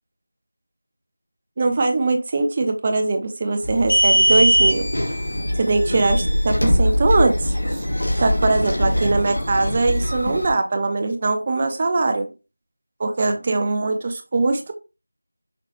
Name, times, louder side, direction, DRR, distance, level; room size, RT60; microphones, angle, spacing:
voice 1, 1.6-4.9 5.6-7.8 8.2-12.3 13.0-14.7, right 3 dB, 25° right, 6 dB, 0.6 m, -21 dB
sound 1, 3.6-10.5, equal, 90° left, 1.8 m, -21 dB
5.8 x 3.2 x 2.5 m, 0.29 s
figure-of-eight pair, 170°, 0 cm